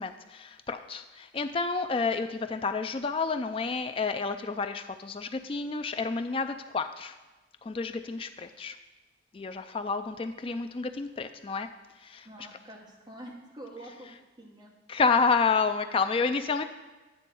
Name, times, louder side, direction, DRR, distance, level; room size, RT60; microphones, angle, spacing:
voice 1, 0.0-7.2 7.6-8.8 9.3-11.7 12.0-12.3 14.9-16.6, left 4 dB, 30° left, 8 dB, 0.3 m, -29 dB
voice 2, 12.2-14.1 14.4-14.7, right 1 dB, 20° right, -1 dB, 1.1 m, -46 dB
9.1 x 3.5 x 6.8 m, 1.2 s
head